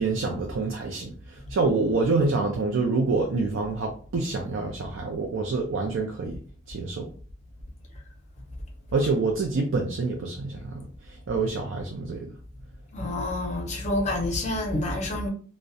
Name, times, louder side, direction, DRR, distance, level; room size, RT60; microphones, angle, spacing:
voice 1, 0.0-6.4 6.7-7.1 8.9-12.3, right 3 dB, 85° right, 0.4 m, -27 dB
voice 2, 12.9-15.3, left 1 dB, 35° left, 0.5 m, -28 dB
2.6 x 2.1 x 2.3 m
head